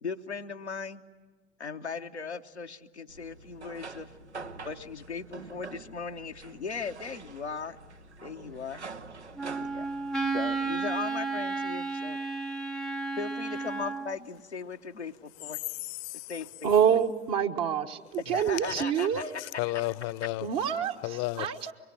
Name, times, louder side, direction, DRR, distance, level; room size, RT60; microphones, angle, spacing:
voice 1, 0.0-1.0 1.6-4.1 4.6-7.8 8.2-8.9 9.7-9.9 10.3-12.2 13.2-15.6 16.3-17.0 18.3-19.9, left 5 dB, 90° left, 0.9 m, -38 dB
sound 1, 3.1-10.8, right 4 dB, 85° right, 0.9 m, -46 dB
Wind instrument woodwind instrument, 9.4-14.2, right 4 dB, ahead, 0.8 m, -32 dB
voice 2, 15.8-16.3 18.3-18.4 19.4-20.5 21.0-21.5, left 19 dB, 55° left, 0.8 m, -33 dB
voice 3, 16.6-19.3 20.4-21.0 21.4-21.7, right 8 dB, 50° right, 1.4 m, -26 dB
26.0 x 23.0 x 8.8 m
figure-of-eight pair, 65°, 33 cm